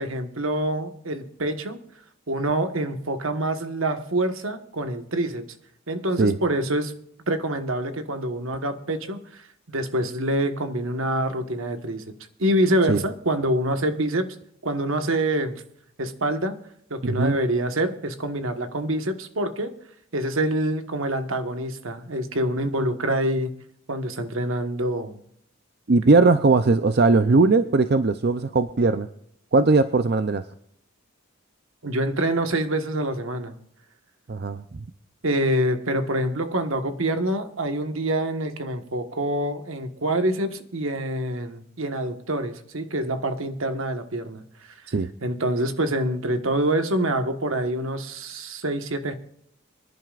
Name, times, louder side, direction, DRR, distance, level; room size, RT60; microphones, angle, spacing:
voice 1, 0.0-1.8 2.3-5.4 5.9-6.9 7.3-12.0 12.4-14.3 14.6-15.6 16.0-16.6 16.9-19.7 20.1-23.5 23.9-25.2 31.8-33.6 35.2-44.4 45.2-49.1, right 1 dB, 75° right, 7 dB, 1.4 m, -26 dB
voice 2, 17.0-17.4 25.9-29.1 29.5-30.4 34.3-34.6 44.9-45.1, right 3 dB, 50° right, 10 dB, 0.6 m, -19 dB
25.5 x 11.0 x 2.5 m, 0.70 s
head